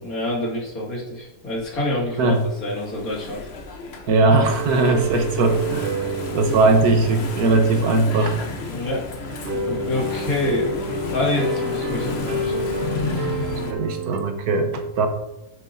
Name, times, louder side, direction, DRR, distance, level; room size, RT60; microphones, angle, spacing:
voice 1, 0.0-3.4 8.7-9.0 9.7-10.7 11.1-12.6, left 1 dB, 65° left, -3 dB, 2.7 m, -26 dB
Engine / Mechanisms, 1.6-13.7, left 4 dB, 50° left, 1.1 m, -33 dB
voice 2, 4.1-8.4 13.5-15.1, right 3 dB, 85° right, 6 dB, 1.6 m, -19 dB
sound 1, 4.5-14.2, right 2 dB, 50° right, 0.8 m, -29 dB
9.9 x 8.6 x 2.7 m, 0.98 s
omnidirectional pair, 1.6 m